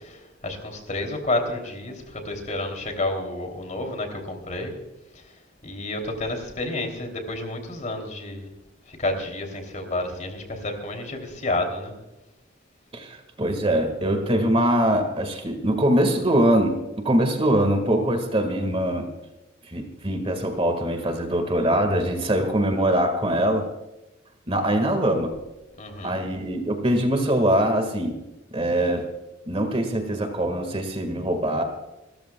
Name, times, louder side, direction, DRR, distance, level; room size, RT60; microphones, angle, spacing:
voice 1, 0.0-4.7 5.6-8.5 8.9-11.9 25.8-26.2, left 2 dB, 40° left, 4 dB, 3.0 m, -30 dB
voice 2, 12.9-19.1 19.7-23.7 24.5-25.4 26.0-28.2 28.5-29.1 29.5-31.6, right 1 dB, 30° right, 6 dB, 1.8 m, -23 dB
29.5 x 14.0 x 2.3 m, 1.0 s
head